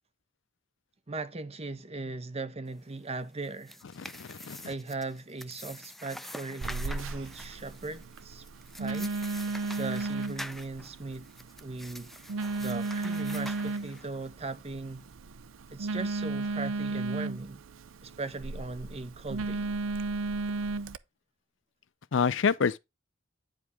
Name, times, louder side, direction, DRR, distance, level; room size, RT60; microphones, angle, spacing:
voice 1, 1.1-3.8 4.6-8.4 8.8-9.1 9.8-11.3 11.6-12.1 12.6-15.1 15.7-17.6 18.0-19.7, right 3 dB, 30° right, 0.8 m, -38 dB
sound 1, 3.4-14.3, left 1 dB, ahead, 0.4 m, -46 dB
voice 2, 4.1-4.6 22.1-22.8, left 6 dB, 65° left, 0.5 m, -26 dB
Telephone, 6.6-21.0, right 3 dB, 75° right, 0.5 m, -35 dB
9.7 x 5.0 x 3.5 m
head